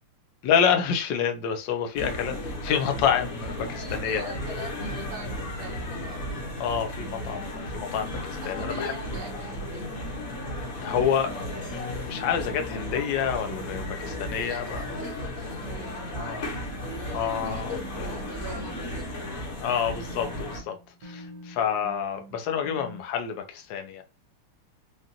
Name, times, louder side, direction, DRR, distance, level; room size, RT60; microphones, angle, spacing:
voice 1, 0.4-4.3 6.6-9.2 10.8-11.3 11.7-14.8 16.2-16.4 17.1-18.2 19.6-20.8 21.0-24.0, left 8 dB, 65° left, 1.3 m, -28 dB
sound 1, 1.9-20.6, left 1 dB, 45° left, 1.4 m, -35 dB
sound 2, 3.5-6.4 7.0-10.7 11.3-15.3 15.6-19.6 19.9-23.0, right 1 dB, 55° right, 1.4 m, -47 dB
voice 2, 3.8-6.2 8.4-10.0 14.4-16.4 16.8-19.2, right 5 dB, 75° right, 1.5 m, -43 dB
Laughter, 14.6-17.8, left 6 dB, 90° left, 2.0 m, -50 dB
5.1 x 2.5 x 2.8 m
omnidirectional pair, 2.4 m